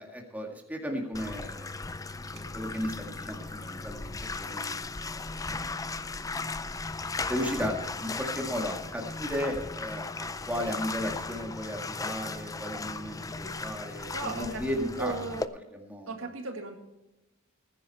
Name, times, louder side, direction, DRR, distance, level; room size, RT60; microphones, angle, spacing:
voice 1, 0.0-1.7 2.3-4.7 5.0-5.7 7.3-15.4 15.7-16.1, equal, 10° right, 1 dB, 2.0 m, -35 dB
Bathtub (filling or washing), 1.1-15.5, left 3 dB, 15° left, 0.5 m, -37 dB
voice 2, 14.1-15.5 16.1-16.8, right 3 dB, 75° right, 4 dB, 2.0 m, -36 dB
19.5 x 10.0 x 4.3 m, 0.96 s
head